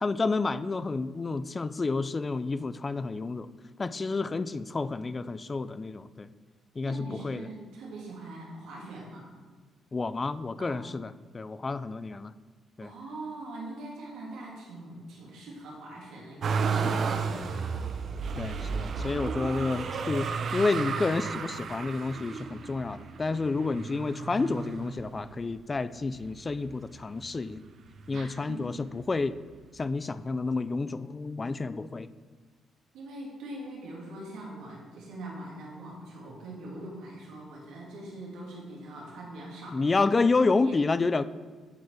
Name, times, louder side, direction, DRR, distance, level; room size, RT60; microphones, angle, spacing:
voice 1, 0.0-3.5 3.8-6.3 6.8-7.5 9.9-12.3 12.8-12.9 16.8-17.1 18.4-27.7 28.1-29.4 29.7-32.1 39.7-41.2, left 3 dB, 30° left, 14 dB, 0.4 m, -30 dB
voice 2, 6.8-9.3 10.6-10.8 12.8-17.8 28.1-28.6 32.9-40.0 40.4-40.8, right 1 dB, 85° right, -3 dB, 2.4 m, -42 dB
Motor vehicle (road), 16.4-25.5 26.1-27.0 27.2-28.3 29.4-29.5, right 5 dB, 55° right, 0.6 m, -33 dB
10.0 x 4.7 x 4.8 m, 1.4 s
cardioid pair, 90°, 0 cm